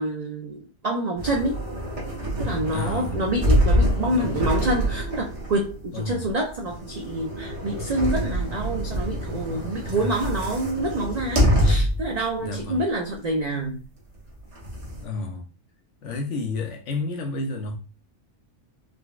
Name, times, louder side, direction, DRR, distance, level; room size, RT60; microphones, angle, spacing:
voice 1, 0.0-1.6 2.4-13.8, right 1 dB, 70° right, 0.3 m, -27 dB
sound 1, 1.2-12.1 12.6-12.7 14.2-15.0, equal, 35° right, 0.8 m, -25 dB
voice 2, 2.7-3.2 4.0-4.5 5.9-6.3 9.9-10.1 12.4-12.8 15.0-15.5 16.0-17.8, left 2 dB, 75° left, 1.0 m, -31 dB
3.8 x 2.1 x 2.3 m
omnidirectional pair, 1.3 m